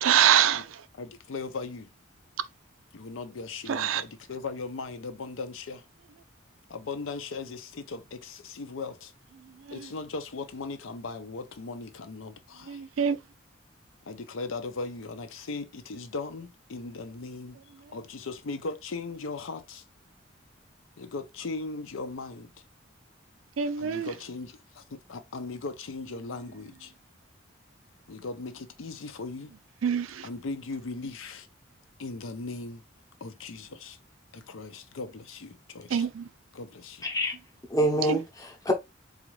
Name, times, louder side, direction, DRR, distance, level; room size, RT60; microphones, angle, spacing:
voice 1, 0.0-0.8 3.7-4.0 9.7-9.9 12.7-13.2 23.6-24.1 29.8-30.3 35.9-36.3 38.1-38.2, right 8 dB, 90° right, 0.4 m, -25 dB
voice 2, 1.0-1.9 2.9-5.8 6.7-9.1 9.7-12.8 14.1-17.6 17.9-19.8 21.0-22.5 23.8-26.9 28.1-29.5 30.2-31.5 32.0-32.8 33.2-34.0 34.3-36.1 36.5-37.1, left 3 dB, 85° left, 0.6 m, -38 dB
voice 3, 37.0-37.3 37.7-38.7, right 1 dB, 15° left, 0.7 m, -26 dB
4.0 x 2.5 x 3.1 m
head